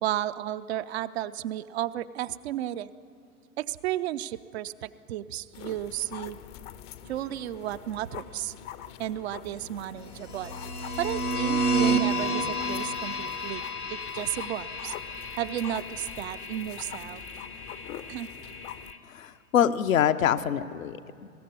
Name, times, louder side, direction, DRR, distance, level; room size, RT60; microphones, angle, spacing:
voice 1, 0.0-2.9 3.6-6.4 7.1-8.5 9.0-10.6 11.0-13.6 13.9-14.9 15.3-17.2 18.1-18.3, right 12 dB, 45° right, 12 dB, 0.6 m, -33 dB
sound 1, 5.5-18.9, left 10 dB, 30° left, 0.7 m, -44 dB
sound 2, 10.2-19.0, right 2 dB, 90° left, 1.8 m, -31 dB
voice 2, 19.1-21.3, left 9 dB, 65° left, 9 dB, 0.9 m, -25 dB
21.0 x 16.0 x 9.6 m, 2.3 s
figure-of-eight pair, 95°, 44 cm